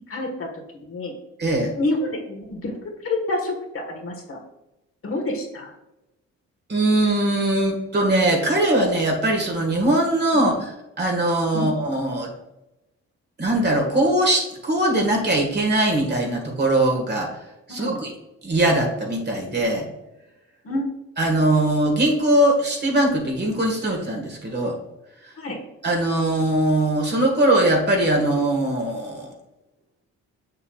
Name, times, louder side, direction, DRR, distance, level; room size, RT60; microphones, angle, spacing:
voice 1, 0.1-0.5 0.7-1.1 1.7-4.4 5.0-5.7 10.3-10.5 11.5-11.7 17.7-18.0 20.6-20.9 25.4-25.6, left 2 dB, 45° left, 2 dB, 1.5 m, -28 dB
voice 2, 1.4-1.7 6.7-10.7 11.0-12.3 13.4-17.3 17.7-18.1 18.4-19.9 21.2-24.8 25.8-29.3, right 1 dB, 35° right, 1 dB, 1.7 m, -21 dB
6.9 x 6.6 x 2.4 m, 0.92 s
cardioid pair, 90°, 30 cm